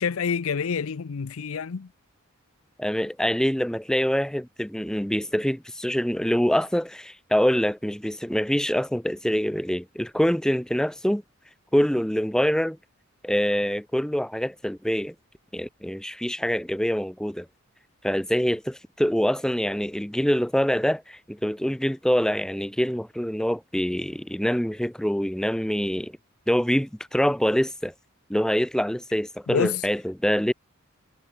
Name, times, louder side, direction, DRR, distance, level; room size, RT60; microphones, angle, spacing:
voice 1, 0.0-1.9 29.5-29.8, left 6 dB, 80° left, 0.6 m, -27 dB
voice 2, 2.8-11.2 11.7-12.8 13.2-15.1 15.5-17.5 18.0-26.1 26.5-27.9 28.3-30.5, equal, 5° left, 0.7 m, -25 dB
head